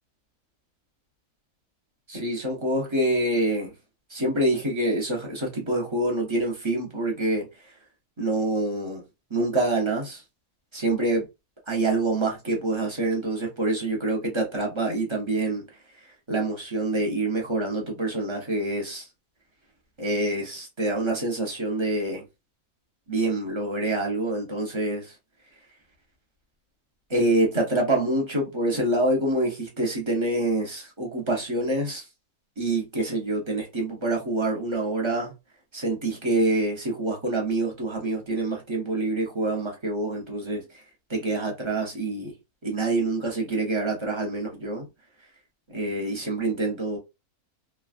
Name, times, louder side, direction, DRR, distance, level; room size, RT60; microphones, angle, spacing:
voice 1, 2.1-3.7 4.1-7.7 8.2-9.0 9.3-10.2 10.7-11.2 11.7-15.6 16.3-19.1 20.0-22.2 23.1-25.1 27.1-32.0 32.6-35.3 35.7-40.6 41.1-42.3 42.6-44.9 45.7-47.0, right 2 dB, 30° right, 0.6 m, -26 dB
3.2 x 2.3 x 2.4 m
omnidirectional pair, 1.6 m